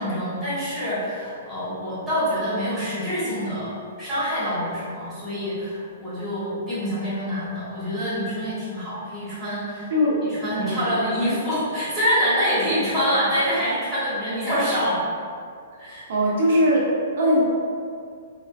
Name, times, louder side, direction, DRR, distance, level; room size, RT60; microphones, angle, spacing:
voice 1, 0.0-9.9 10.2-15.0 15.8-16.0, equal, 5° right, -13 dB, 1.2 m, -26 dB
voice 2, 10.6-10.9 16.1-16.9 17.2-17.4, equal, 65° right, -5 dB, 0.6 m, -20 dB
2.7 x 2.4 x 2.5 m, 2.2 s
hypercardioid pair, 155°, 0 cm